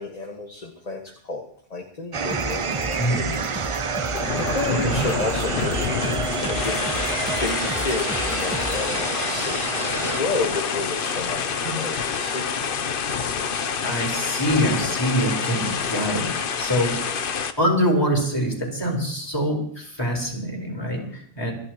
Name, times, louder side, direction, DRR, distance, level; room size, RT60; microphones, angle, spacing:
voice 1, 0.0-1.4 1.7-3.6 4.4-12.5, left 3 dB, 40° left, 1 dB, 1.7 m, -31 dB
sound 1, 2.1-10.2, right 5 dB, 40° right, 0.5 m, -29 dB
sound 2, 2.3-8.8, right 1 dB, 10° right, 1.5 m, -34 dB
sound 3, 3.6-17.5, left 6 dB, 60° left, 1.0 m, -27 dB
voice 2, 4.6-5.0 11.6-11.8 13.8-16.3 16.6-16.9 17.6-21.5, equal, 25° left, 0 dB, 4.7 m, -24 dB
27.5 x 11.0 x 3.0 m, 0.65 s
omnidirectional pair, 1.1 m